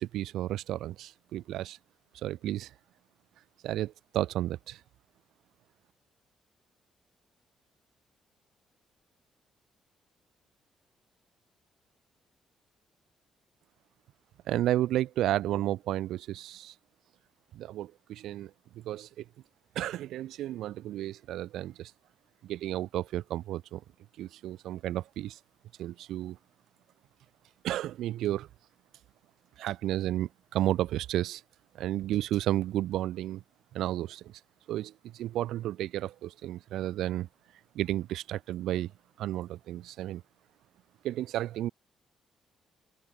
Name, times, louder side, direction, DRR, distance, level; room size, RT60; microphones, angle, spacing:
voice 1, 0.0-1.8 2.2-2.7 3.6-4.8 14.5-16.7 17.5-18.5 18.8-19.2 19.8-21.9 22.4-23.8 24.2-25.4 25.8-26.4 27.6-28.5 29.6-31.4 31.8-33.4 33.7-34.3 34.7-37.3 37.7-38.9 39.2-40.2 41.0-41.7, right 13 dB, 85° right, 4.0 m, -32 dB
cardioid pair, 90°, 0 cm